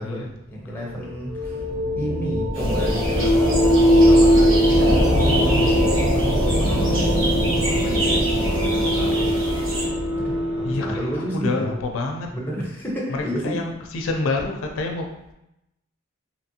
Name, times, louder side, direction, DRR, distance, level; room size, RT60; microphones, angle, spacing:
voice 1, 0.0-1.7 2.0-9.4 10.2-11.9 12.3-13.6, equal, 10° left, -3 dB, 0.6 m, -31 dB
sound 1, 0.8-11.3, equal, 90° right, 1.0 m, -20 dB
sound 2, 2.5-9.9, right 1 dB, 65° right, 1.1 m, -29 dB
voice 2, 10.6-12.3 13.1-15.3, left 3 dB, 80° left, 2 dB, 0.4 m, -28 dB
2.9 x 2.5 x 2.7 m, 0.86 s
head